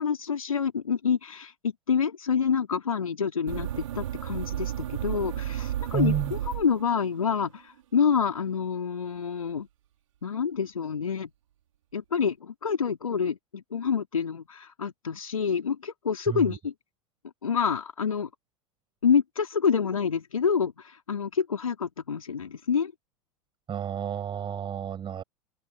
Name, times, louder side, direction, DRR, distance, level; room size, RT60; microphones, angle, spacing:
voice 1, 0.0-9.7 10.2-11.3 11.9-16.7 17.4-18.3 19.0-22.9, left 6 dB, 80° left, 3.5 m, -27 dB
sound 1, 3.5-7.2, right 12 dB, 70° right, 4.7 m, -33 dB
voice 2, 5.9-6.3 16.3-16.4 23.7-25.2, right 8 dB, 30° right, 7.3 m, -30 dB
figure-of-eight pair, 85°, 17 cm